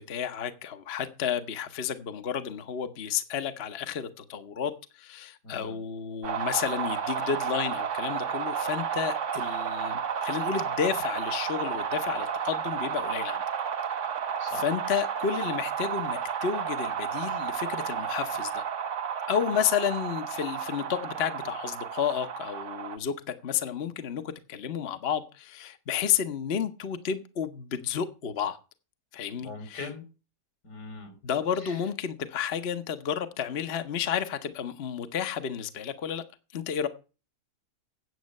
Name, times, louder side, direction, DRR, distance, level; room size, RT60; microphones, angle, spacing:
voice 1, 0.0-13.4 14.5-18.6 19.3-23.2 23.4-28.6 29.1-29.9 31.2-36.2 36.5-36.9, left 8 dB, 45° left, 1.0 m, -31 dB
voice 2, 5.4-5.8 14.4-14.7 29.4-30.0 30.6-31.2 31.6-31.7, left 3 dB, 85° left, 4.4 m, -41 dB
sound 1, 6.2-23.0, right 7 dB, 55° right, 1.2 m, -32 dB
9.5 x 7.8 x 6.4 m
omnidirectional pair, 1.7 m